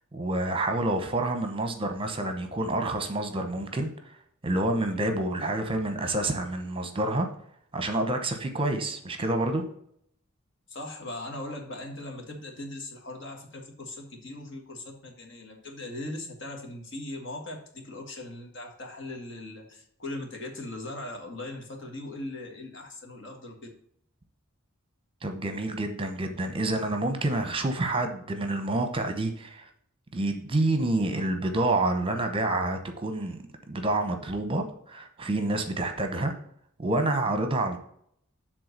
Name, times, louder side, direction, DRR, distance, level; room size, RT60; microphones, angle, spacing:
voice 1, 0.1-4.2 4.4-7.3 7.7-9.6 25.2-29.7 30.1-33.4 33.7-36.3 36.8-37.8, right 2 dB, 25° right, 6 dB, 0.9 m, -28 dB
voice 2, 10.7-23.7, left 1 dB, 60° left, 2 dB, 1.8 m, -39 dB
7.7 x 3.7 x 6.5 m, 0.67 s
head